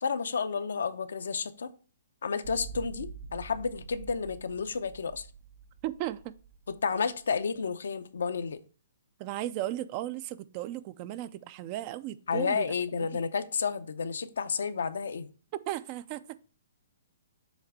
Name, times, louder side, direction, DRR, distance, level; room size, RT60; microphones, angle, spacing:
voice 1, 0.0-1.7 2.2-5.3 6.8-8.6 12.3-15.3, left 5 dB, 80° left, 0.7 m, -31 dB
sound 1, 2.4-7.6, right 6 dB, 75° right, 0.7 m, -46 dB
voice 2, 5.8-6.3 9.2-12.7 13.1-13.2 15.7-16.4, right 14 dB, 35° right, 0.4 m, -36 dB
7.2 x 3.3 x 5.1 m
hypercardioid pair, 145°, 0 cm